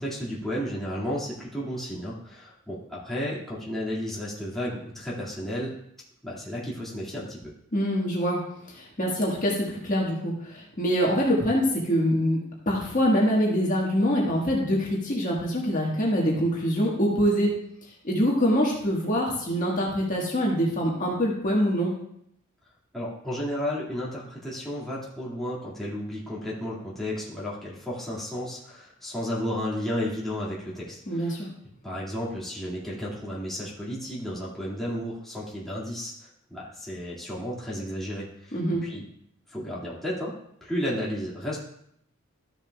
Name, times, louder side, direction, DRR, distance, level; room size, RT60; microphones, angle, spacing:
voice 1, 0.0-5.7 6.2-7.5 22.9-31.4 31.8-39.0 39.5-40.3 40.6-41.6, equal, ahead, -7 dB, 2.1 m, -33 dB
voice 2, 7.7-8.4 8.7-12.4 12.6-17.6 18.0-21.9 31.1-31.5 38.5-38.8, equal, 40° left, -3 dB, 1.5 m, -24 dB
13.0 x 7.1 x 2.3 m, 0.72 s
head